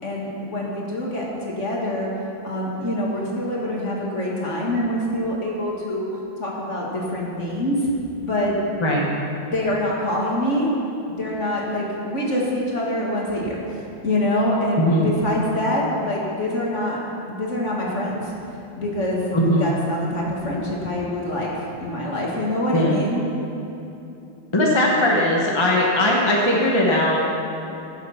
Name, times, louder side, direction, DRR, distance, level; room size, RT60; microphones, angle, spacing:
voice 1, 0.0-2.1 2.4-6.1 6.4-7.9 8.2-8.5 9.5-10.7 11.1-13.6 14.0-17.0 17.3-18.3 18.8-23.3, left 1 dB, 40° left, -3 dB, 2.1 m, -25 dB
voice 2, 19.3-19.7 22.7-23.0 24.5-27.2, left 1 dB, 20° left, -3 dB, 1.0 m, -19 dB
15.0 x 7.3 x 5.8 m, 2.8 s
omnidirectional pair, 2.1 m